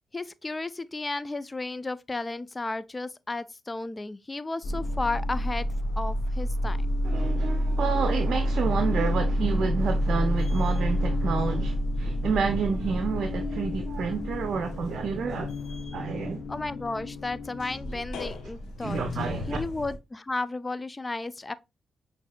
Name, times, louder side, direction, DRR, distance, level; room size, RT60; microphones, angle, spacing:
voice 1, 0.1-5.7 6.0-6.9 16.5-19.0 19.5-21.5, left 2 dB, 25° left, 0.4 m, -33 dB
sound 1, 4.6-20.0, equal, 75° left, 0.8 m, -29 dB
voice 2, 7.0-15.6 15.9-16.4 18.8-19.6, right 5 dB, 65° right, 0.6 m, -29 dB
6.3 x 2.7 x 2.2 m
supercardioid pair, 55°, 0 cm